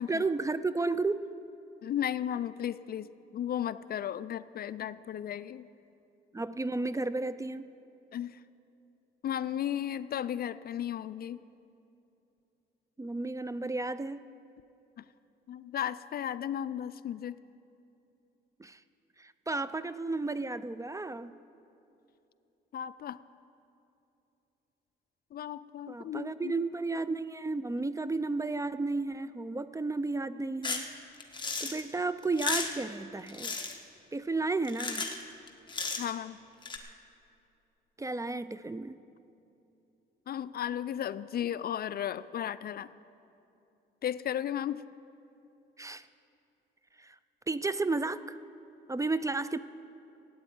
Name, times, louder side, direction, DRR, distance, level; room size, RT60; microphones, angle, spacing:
voice 1, 0.1-1.3 6.3-7.7 13.0-14.2 18.6-18.8 19.2-21.3 25.9-30.9 31.6-33.6 34.1-35.1 38.0-39.0 45.8-46.1 47.0-47.2 47.5-48.4 48.9-49.6, right 3 dB, 15° right, 14 dB, 0.4 m, -33 dB
voice 2, 1.8-5.7 8.1-8.4 9.2-11.4 15.0-15.1 15.5-17.4 22.7-23.2 25.3-26.6 36.0-36.4 40.3-42.9 44.0-44.8, left 10 dB, 50° left, 16 dB, 0.4 m, -35 dB
sound 1, 30.6-30.9 31.2-31.8 32.2-32.8 33.3-33.8 34.6-35.2 35.5-36.1 36.6-36.8, left 4 dB, 25° left, 1.4 m, -34 dB
14.0 x 8.7 x 9.2 m, 2.8 s
cardioid pair, 90°, 20 cm